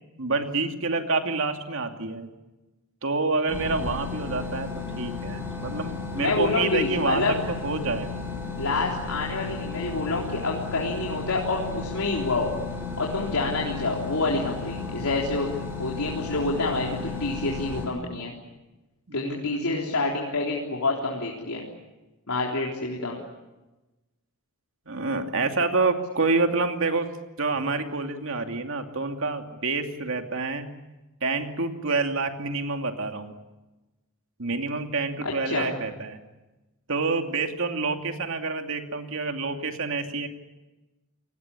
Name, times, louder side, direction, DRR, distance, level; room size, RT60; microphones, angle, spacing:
voice 1, 0.2-2.3 3.0-4.7 5.0-8.2 19.1-19.6 24.9-27.1 27.4-30.7 31.2-33.3 34.4-36.2 36.9-40.3, right 3 dB, 65° right, 5 dB, 2.6 m, -27 dB
sound 1, 3.5-17.8, left 4 dB, 10° right, 7.6 m, -34 dB
voice 2, 6.2-7.4 8.6-12.5 13.0-15.5 15.8-18.3 19.1-21.7 22.3-23.2 35.5-35.7, left 3 dB, 90° left, -2 dB, 3.8 m, -27 dB
30.0 x 19.5 x 8.5 m, 1.1 s
head